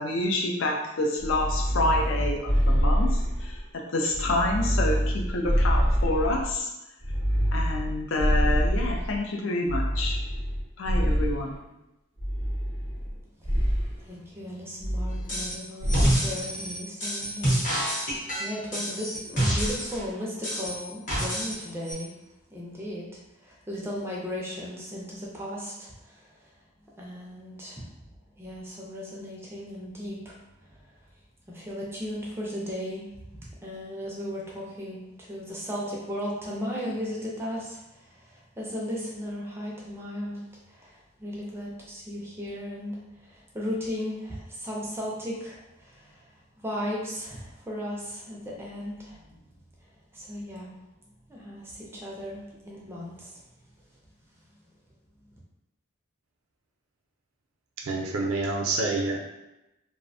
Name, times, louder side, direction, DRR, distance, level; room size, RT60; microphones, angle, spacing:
voice 1, 0.0-6.7 7.5-10.2 10.8-11.6, left 2 dB, 65° left, 1 dB, 0.4 m, -28 dB
sound 1, 1.2-3.6 4.1-6.6 7.0-9.2 9.7-11.5 12.2-13.1 13.4-13.9 14.8-15.5 15.8-16.3, equal, 90° left, 1.1 m, -26 dB
voice 2, 14.0-22.2 22.5-26.5 27.0-27.9 28.4-30.9 31.5-33.1 33.6-49.4 49.8-50.7 51.3-53.4, equal, 10° right, -4 dB, 0.4 m, -36 dB
sound 2, 15.3-15.6 15.9-20.0 20.4-21.6 21.9-22.0, equal, 35° left, 0.7 m, -27 dB
voice 3, 57.8-59.2, right 3 dB, 85° right, 1 dB, 0.4 m, -27 dB
2.5 x 2.1 x 2.6 m, 0.95 s
head